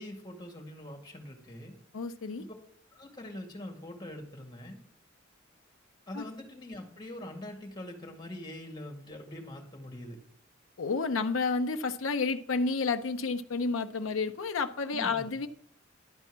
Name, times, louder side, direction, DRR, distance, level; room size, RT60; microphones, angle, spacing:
voice 1, 0.0-1.8 2.4-2.5 2.9-4.8 6.1-10.2 14.9-15.3, left 1 dB, 20° left, 2.1 m, -43 dB
voice 2, 1.9-2.5 6.1-6.2 10.8-15.5, left 4 dB, 90° left, 0.6 m, -30 dB
12.0 x 4.5 x 7.2 m
head